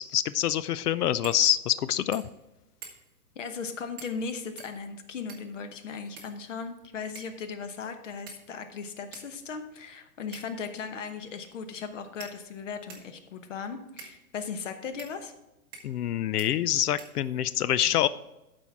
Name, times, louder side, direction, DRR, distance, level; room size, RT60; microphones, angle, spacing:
voice 1, 0.0-2.2 15.8-18.1, left 11 dB, 80° left, 16 dB, 0.5 m, -26 dB
sound 1, 1.2-1.4 1.8-1.9 2.1-2.4 2.8-3.2 4.0-4.2 4.6-5.6 6.2-6.7 7.2-7.4 8.3-8.7 9.1-9.3 10.3-10.7 11.5-11.6 12.2-13.1 14.0-14.2 15.0-15.1 15.7-16.1 16.4-16.5 17.0-17.5, right 5 dB, 15° right, 0.7 m, -47 dB
voice 2, 3.3-15.3, left 5 dB, 55° left, 8 dB, 1.1 m, -37 dB
12.0 x 4.4 x 4.6 m, 0.95 s
hypercardioid pair, 165°, 46 cm